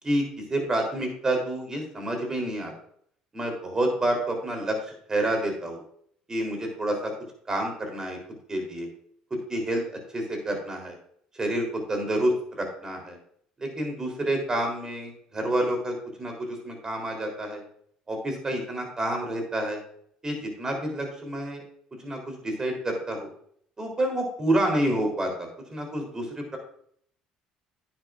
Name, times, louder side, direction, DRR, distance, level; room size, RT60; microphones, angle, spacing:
voice 1, 0.5-2.7 3.3-5.8 6.3-7.1 7.5-8.2 8.5-8.9 9.3-9.8 10.1-11.0 11.4-13.2 13.6-17.6 18.1-19.8 20.2-21.6 22.0-23.3 23.8-26.6, right 1 dB, 25° right, 3 dB, 3.6 m, -28 dB
9.9 x 9.5 x 2.5 m, 0.63 s
supercardioid pair, 90°, 3 cm